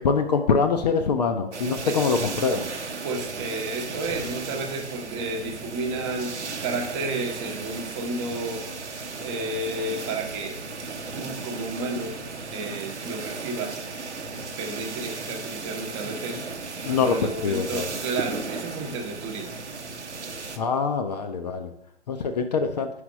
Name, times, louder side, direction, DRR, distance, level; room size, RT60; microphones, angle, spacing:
voice 1, 0.0-2.7 16.8-17.2 17.4-17.9 20.6-21.7 22.1-22.9, left 5 dB, 40° left, 6 dB, 0.5 m, -24 dB
sound 1, 1.5-20.6, right 4 dB, 80° right, 0.8 m, -35 dB
voice 2, 3.0-8.7 9.2-10.6 11.1-12.2 12.5-13.8 14.6-16.5 16.9-19.6, right 2 dB, 25° right, 3 dB, 0.9 m, -32 dB
5.0 x 4.9 x 5.1 m, 0.73 s
figure-of-eight pair, 115°, 34 cm